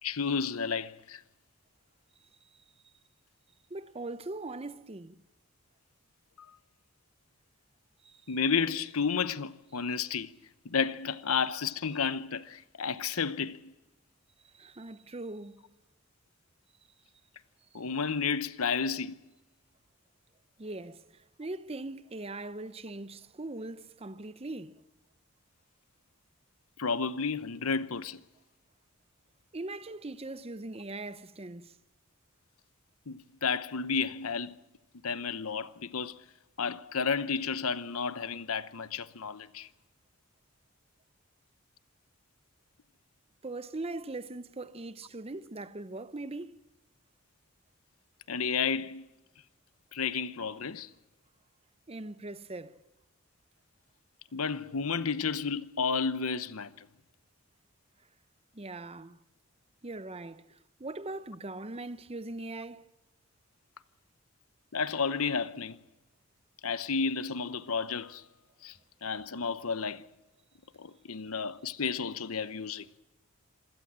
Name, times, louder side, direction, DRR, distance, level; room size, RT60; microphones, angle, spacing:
voice 1, 0.0-1.2 8.3-10.3 10.6-13.7 17.7-19.2 26.8-28.2 33.1-34.6 35.0-36.2 36.6-39.7 48.3-49.1 49.9-50.9 54.3-56.9 64.7-65.8 66.6-68.2 68.6-70.0 70.8-72.9, left 5 dB, 90° left, 0.9 m, -32 dB
voice 2, 3.7-5.2 8.0-8.4 14.4-15.6 20.6-24.8 29.5-31.8 43.4-46.6 51.9-52.8 58.5-59.2 59.8-62.9, right 2 dB, 30° right, 0.8 m, -41 dB
26.5 x 17.0 x 7.5 m
head